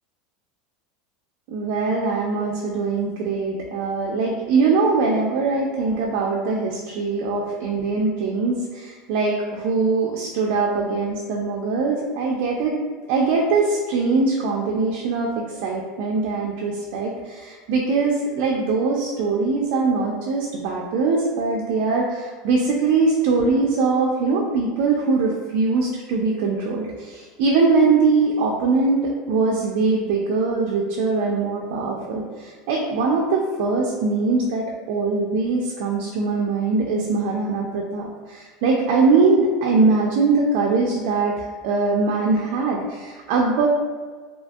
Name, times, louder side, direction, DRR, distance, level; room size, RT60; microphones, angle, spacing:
voice 1, 1.5-12.7 13.1-15.3 15.6-29.0 29.3-32.2 32.7-41.3 41.6-43.7, right 4 dB, 60° right, -2 dB, 0.3 m, -22 dB
2.7 x 2.5 x 2.3 m, 1.4 s
supercardioid pair, 150°, 0 cm